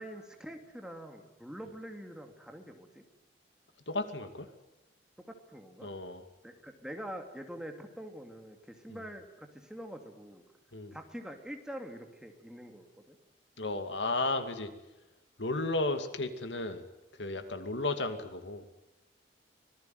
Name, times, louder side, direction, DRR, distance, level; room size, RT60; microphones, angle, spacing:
voice 1, 0.0-3.0 5.2-5.9 6.4-10.4 10.9-13.2 17.4-17.6, equal, 5° right, 4 dB, 2.6 m, -45 dB
voice 2, 3.9-4.5 5.8-6.2 8.9-9.0 10.7-10.9 13.6-14.7 15.4-16.9 17.2-18.7, left 2 dB, 85° left, 8 dB, 2.4 m, -34 dB
25.5 x 19.5 x 9.3 m, 1.0 s
head